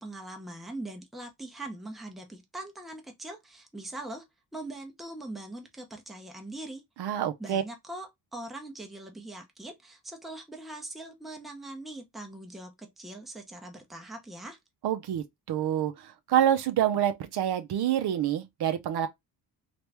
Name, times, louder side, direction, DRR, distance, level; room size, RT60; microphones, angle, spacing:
voice 1, 0.0-4.2 4.5-6.8 7.4-14.6, right 1 dB, ahead, 0.6 m, -42 dB
voice 2, 7.0-7.6 14.8-19.1, right 10 dB, 60° right, 0.6 m, -27 dB
3.1 x 2.5 x 3.3 m
cardioid pair, 145°, 45 cm